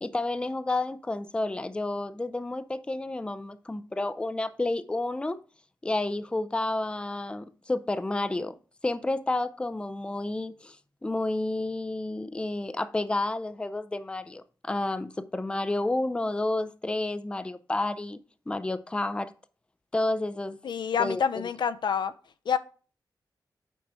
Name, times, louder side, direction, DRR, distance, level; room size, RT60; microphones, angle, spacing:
voice 1, 0.0-5.4 5.8-8.5 8.8-10.8 11.0-18.2 18.5-19.3 19.9-20.6 21.0-21.5, left 2 dB, 15° left, 0.4 m, -30 dB
voice 2, 20.6-22.1 22.5-22.6, left 7 dB, 75° left, 0.4 m, -27 dB
6.0 x 4.6 x 4.2 m
wide cardioid pair, 100°, 8 cm